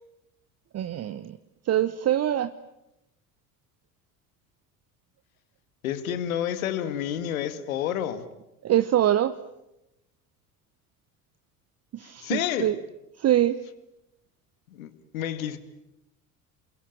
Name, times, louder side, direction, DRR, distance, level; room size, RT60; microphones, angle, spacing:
voice 1, 0.7-1.4 1.7-2.5 8.6-9.3 11.9-12.7 13.2-13.6, right 12 dB, 35° right, 12 dB, 1.1 m, -24 dB
voice 2, 5.8-8.2 12.0-12.7 14.7-15.6, left 10 dB, 70° left, 12 dB, 2.1 m, -30 dB
29.5 x 22.5 x 9.1 m, 0.88 s
figure-of-eight pair, 65°, 42 cm